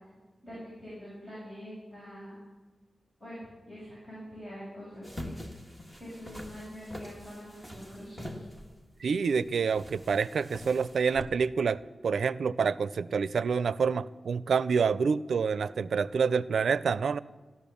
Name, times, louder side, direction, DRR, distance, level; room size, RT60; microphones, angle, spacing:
voice 1, 0.4-2.4 3.2-3.4 3.7-5.3 6.0-8.4, equal, 30° left, -8 dB, 6.7 m, -44 dB
sound 1, 5.0-11.2, left 1 dB, 10° left, 1.7 m, -44 dB
voice 2, 9.0-11.8 12.0-17.2, right 6 dB, 90° right, 16 dB, 0.4 m, -27 dB
15.0 x 12.5 x 7.0 m, 1.3 s
wide cardioid pair, 165°, 0 cm